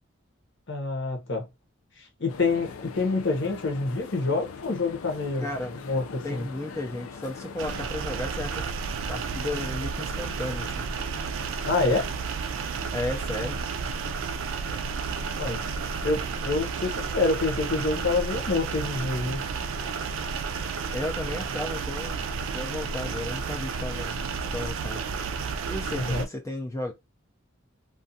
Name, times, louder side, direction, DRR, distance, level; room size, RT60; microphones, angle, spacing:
voice 1, 0.7-1.5 2.0-5.5 5.8-6.5 11.6-12.1 15.4-15.6 16.0-19.4 25.9-26.3, left 3 dB, 60° left, 0.8 m, -27 dB
sound 1, 2.3-7.9, left 5 dB, 90° left, 0.4 m, -42 dB
voice 2, 5.4-5.8 6.2-8.7 9.1-10.9 12.9-13.6 20.9-22.2 22.5-24.2 24.5-25.0 25.7-26.9, left 1 dB, 15° left, 0.4 m, -34 dB
sound 2, 7.6-26.3, right 5 dB, 70° right, 0.3 m, -32 dB
2.5 x 2.3 x 2.6 m
head